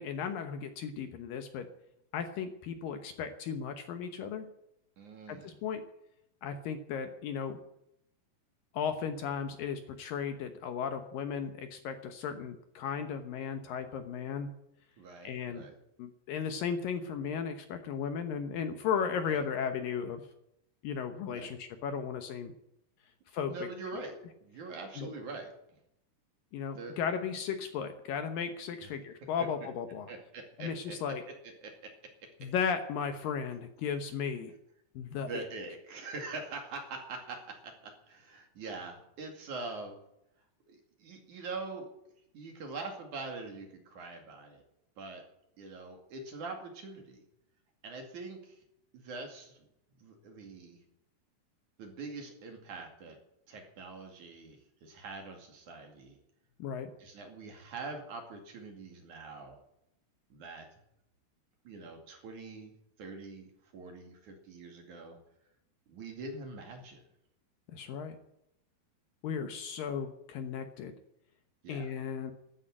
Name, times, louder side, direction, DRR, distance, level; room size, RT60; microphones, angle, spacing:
voice 1, 0.0-1.7 2.1-4.5 5.3-5.8 6.4-7.6 8.7-14.5 15.2-15.7 16.0-20.2 20.8-22.5 23.3-23.5 25.0-25.1 26.5-30.1 30.6-31.2 32.4-34.5 35.0-35.3 56.6-56.9 67.7-68.2 69.2-70.9 71.7-72.3, left 7 dB, 70° left, 7 dB, 2.4 m, -35 dB
voice 2, 5.0-5.7 15.0-15.7 19.1-19.4 21.3-21.5 23.5-24.1 24.4-25.5 26.7-27.0 28.8-28.9 29.2-29.5 30.1-31.0 31.3-31.9 32.2-32.5 35.1-40.0 40.7-41.9 42.3-44.6 45.0-45.2 45.6-47.2 47.8-48.6 48.9-49.7 50.0-50.8 51.8-53.2 53.5-56.2 57.0-59.6 60.3-60.7 61.6-65.2 65.9-67.0 71.6-71.9, right 3 dB, 55° right, 3 dB, 3.4 m, -44 dB
13.0 x 9.9 x 8.9 m, 0.80 s
omnidirectional pair, 4.7 m